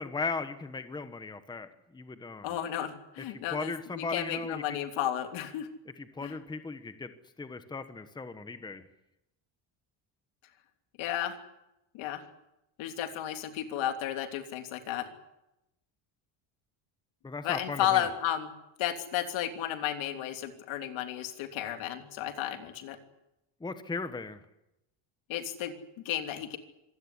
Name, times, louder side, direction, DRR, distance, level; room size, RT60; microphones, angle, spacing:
voice 1, 0.0-2.5 3.3-4.6 6.0-7.1 7.4-8.9 17.2-18.1 23.6-24.4, left 4 dB, 10° left, 10 dB, 1.2 m, -37 dB
voice 2, 2.4-5.7 6.2-6.4 11.0-11.4 11.9-12.2 12.8-15.1 17.4-18.5 18.8-23.0 25.3-25.7 26.0-26.6, left 11 dB, 75° left, 6 dB, 3.2 m, -33 dB
25.5 x 16.5 x 9.9 m, 0.90 s
cardioid pair, 150°, 47 cm